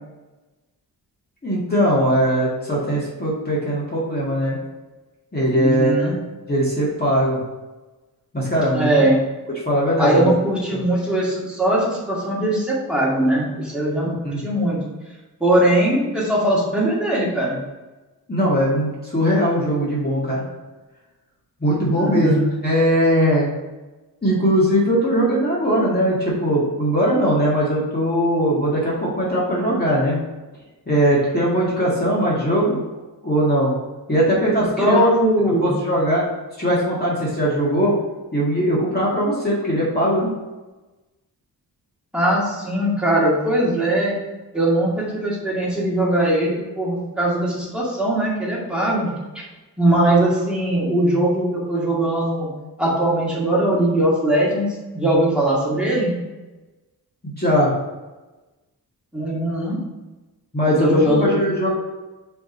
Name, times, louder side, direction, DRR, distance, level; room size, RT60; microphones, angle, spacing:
voice 1, 1.4-4.6 5.3-6.2 6.5-7.4 8.3-9.1 9.7-10.3 10.7-10.8 14.2-14.4 18.3-20.4 21.6-22.3 22.6-23.5 24.2-30.2 30.9-32.8 33.2-33.7 34.1-35.1 35.6-36.2 36.6-37.9 38.3-40.3 57.2-57.7 60.5-61.7, equal, 25° left, -6 dB, 1.8 m, -20 dB
voice 2, 5.5-6.2 8.7-9.2 10.0-14.8 15.4-17.6 21.9-22.6 34.8-35.7 42.1-44.2 44.5-49.1 49.8-52.5 52.8-54.7 54.9-56.1 59.1-59.8 60.7-61.4, right 1 dB, 5° right, -6 dB, 2.3 m, -20 dB
5.0 x 4.8 x 5.4 m, 1.1 s
wide cardioid pair, 120°, 38 cm